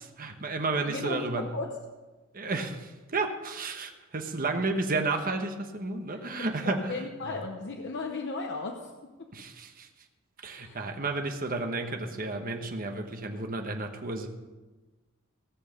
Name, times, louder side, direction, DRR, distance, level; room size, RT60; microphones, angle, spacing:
voice 1, 0.2-1.5 2.3-7.4 9.3-9.9 10.4-14.3, right 3 dB, 45° right, 4 dB, 1.1 m, -32 dB
voice 2, 0.8-1.8 6.1-9.3 10.6-10.8, left 3 dB, 55° left, 3 dB, 0.8 m, -36 dB
17.0 x 6.4 x 5.2 m, 1.2 s
head